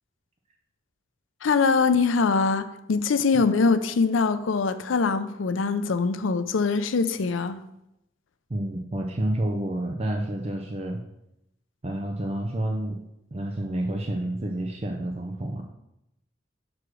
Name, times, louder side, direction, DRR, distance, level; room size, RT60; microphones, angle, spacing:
voice 1, 1.4-7.6, left 4 dB, 85° left, 0.5 m, -23 dB
voice 2, 8.5-11.0 11.8-13.0 13.3-15.6, right 1 dB, 35° right, 0.6 m, -29 dB
6.0 x 4.9 x 6.2 m
head